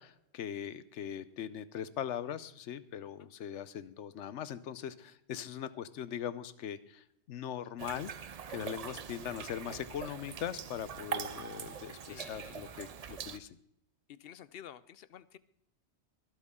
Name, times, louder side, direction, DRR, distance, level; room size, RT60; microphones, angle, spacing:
voice 1, 0.0-13.5, left 9 dB, 90° left, 15 dB, 1.0 m, -41 dB
sound 1, 7.8-13.4, right 7 dB, 45° right, 0.5 m, -43 dB
voice 2, 11.7-13.1 14.1-15.4, left 10 dB, 65° left, 17 dB, 0.8 m, -53 dB
23.5 x 8.1 x 3.7 m, 0.75 s
omnidirectional pair, 1.2 m